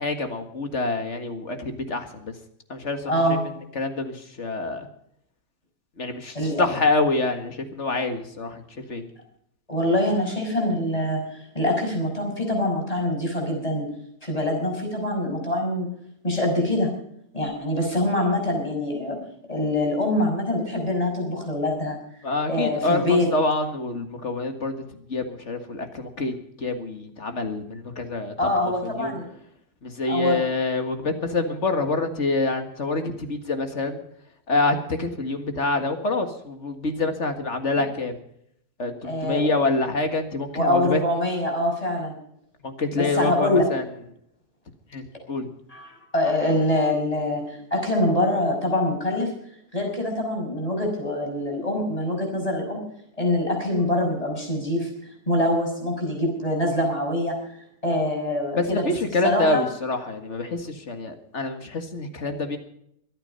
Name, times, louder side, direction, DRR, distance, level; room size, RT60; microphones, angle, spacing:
voice 1, 0.0-2.3 2.7-3.4 3.8-4.9 6.0-8.6 8.9-9.0 22.2-24.8 25.1-28.3 28.8-29.2 29.8-34.0 34.5-38.1 38.8-41.0 42.6-43.8 44.9-45.5 58.5-62.6, left 3 dB, 45° left, 6 dB, 2.0 m, -26 dB
voice 2, 3.1-3.4 6.3-6.6 9.7-13.9 14.2-15.9 16.2-16.9 17.3-19.2 19.5-22.0 22.5-23.3 28.4-29.2 30.1-30.4 39.0-39.4 40.5-42.2 42.9-43.7 45.7-49.3 49.7-52.8 53.2-54.9 55.3-57.3 57.8-58.9 59.2-59.6, left 1 dB, 20° left, 1 dB, 5.7 m, -24 dB
23.5 x 9.0 x 5.4 m, 0.72 s
omnidirectional pair, 1.7 m